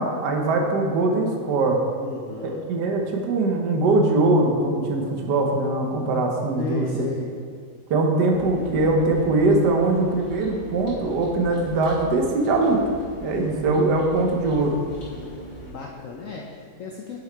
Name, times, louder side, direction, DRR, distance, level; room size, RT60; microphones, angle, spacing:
voice 1, 0.0-1.8 2.4-7.0 7.9-12.8 13.2-14.8, right 2 dB, 70° right, 2 dB, 1.5 m, -22 dB
voice 2, 2.0-2.6 6.6-7.4 15.1-17.2, left 4 dB, 60° left, 0 dB, 0.9 m, -34 dB
sound 1, 8.3-15.7, equal, 90° left, 3.1 m, -42 dB
7.3 x 6.3 x 4.5 m, 2.2 s
omnidirectional pair, 1.9 m